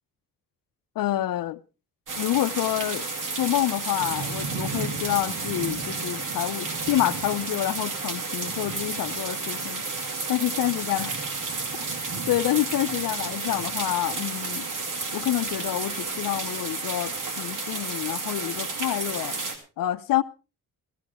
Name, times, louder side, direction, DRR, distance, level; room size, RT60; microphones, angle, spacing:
voice 1, 1.0-1.6 2.2-3.1 3.4-11.1 12.3-14.7 15.1-19.5 19.8-20.2, left 14 dB, 80° left, 0.6 m, -28 dB
sound 1, 2.1-19.6, right 3 dB, 70° right, 2.6 m, -31 dB
16.5 x 14.5 x 3.5 m
wide cardioid pair, 150°, 33 cm